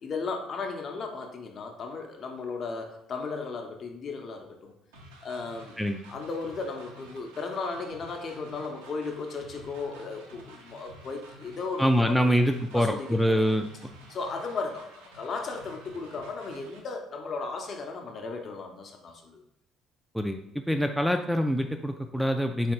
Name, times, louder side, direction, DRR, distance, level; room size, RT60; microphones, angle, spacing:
voice 1, 0.0-4.7 5.2-5.8 6.1-12.3 12.7-13.4 14.1-19.4, left 4 dB, 50° left, 3 dB, 0.6 m, -35 dB
sound 1, 4.9-16.8, right 1 dB, 85° right, 0.6 m, -51 dB
voice 2, 11.8-13.7 20.1-20.4 20.7-22.7, equal, ahead, 4 dB, 0.3 m, -25 dB
3.8 x 3.2 x 2.9 m, 0.79 s
hypercardioid pair, 55°, 0 cm